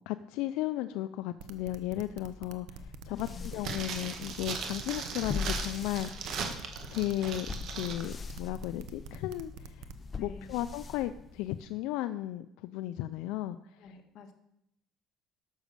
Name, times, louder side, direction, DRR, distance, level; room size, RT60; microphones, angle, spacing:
voice 1, 0.1-6.6 6.9-9.9 10.2-13.9, left 14 dB, 80° left, 11 dB, 0.4 m, -35 dB
sound 1, 1.4-10.0, right 7 dB, 75° right, 1.0 m, -47 dB
sound 2, 2.8-11.7, left 4 dB, 25° left, 0.6 m, -42 dB
voice 2, 3.1-3.5 10.1-10.5 13.8-14.3, left 4 dB, 50° left, 4 dB, 1.7 m, -48 dB
sound 3, 3.6-8.0 8.3-8.4, right 5 dB, 50° right, 1.5 m, -38 dB
12.5 x 6.3 x 6.9 m, 0.78 s
cardioid pair, 155°, 0 cm